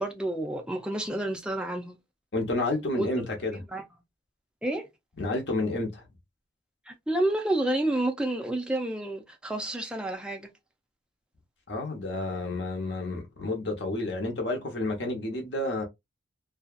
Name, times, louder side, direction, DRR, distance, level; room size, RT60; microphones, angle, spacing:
voice 1, 0.0-2.0 3.0-3.3 3.7-3.8 4.6-4.9 6.9-10.5, right 1 dB, 5° right, 0.5 m, -29 dB
voice 2, 2.3-3.6 5.2-6.1 11.7-15.8, left 2 dB, 65° left, 0.9 m, -30 dB
2.7 x 2.3 x 2.3 m
head